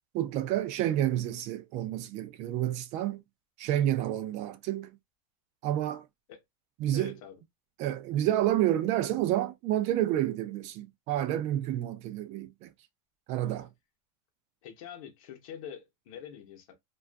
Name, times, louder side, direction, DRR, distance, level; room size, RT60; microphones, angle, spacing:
voice 1, 0.1-3.2 3.6-4.9 5.6-6.1 6.8-7.1 7.8-12.7 13.3-13.7, right 12 dB, 40° right, 0.4 m, -29 dB
voice 2, 6.9-7.4 14.6-16.7, left 8 dB, 75° left, 0.7 m, -45 dB
2.3 x 2.2 x 2.5 m
supercardioid pair, 145°, 18 cm